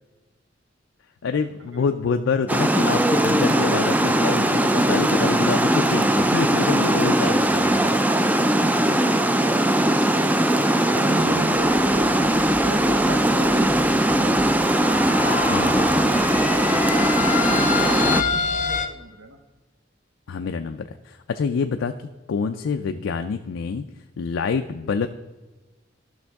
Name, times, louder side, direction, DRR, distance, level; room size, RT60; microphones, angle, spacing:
voice 1, 1.2-8.0 11.2-11.6 15.5-16.1 18.1-18.2 20.3-21.9 22.3-23.8 24.2-25.1, left 5 dB, 85° left, 6 dB, 0.4 m, -27 dB
Water, 2.5-18.2, right 1 dB, 10° right, 0.3 m, -20 dB
voice 2, 8.7-9.8 10.8-14.3 15.2-16.7 17.4-19.4, right 1 dB, 85° right, 6 dB, 0.9 m, -36 dB
sound 1, 11.5-18.9, left 5 dB, 40° left, 0.6 m, -29 dB
12.5 x 6.1 x 3.5 m, 1.2 s
head